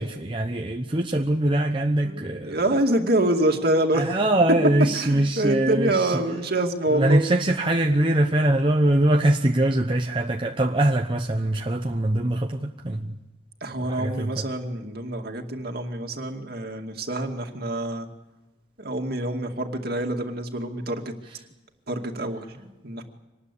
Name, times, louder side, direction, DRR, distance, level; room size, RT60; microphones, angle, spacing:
voice 1, 0.0-2.6 3.9-6.2 6.9-13.2 13.8-14.4, right 1 dB, 25° right, 2 dB, 0.9 m, -23 dB
voice 2, 2.0-4.2 4.9-7.2 13.6-18.1 18.8-21.1 21.9-23.0, right 1 dB, 55° right, 4 dB, 2.3 m, -26 dB
25.0 x 19.5 x 8.4 m, 1.1 s
head